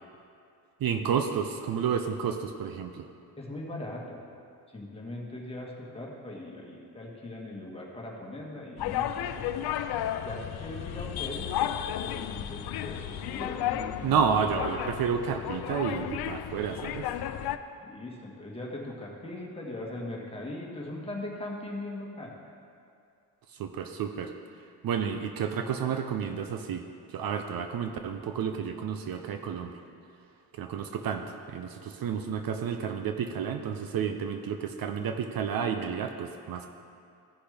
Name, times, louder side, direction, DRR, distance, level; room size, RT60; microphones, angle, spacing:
voice 1, 0.8-3.1 14.0-17.1 23.6-24.3 24.8-26.8 27.1-29.8 30.5-36.7, right 7 dB, 60° right, 6 dB, 0.6 m, -30 dB
voice 2, 3.4-4.2 4.7-9.7 10.2-14.5 17.8-22.4, left 1 dB, 15° left, -3 dB, 1.6 m, -40 dB
sound 1, 8.8-17.6, left 11 dB, 65° left, 0.5 m, -33 dB
15.0 x 5.7 x 3.4 m, 2.4 s
cardioid pair, 110°, 40 cm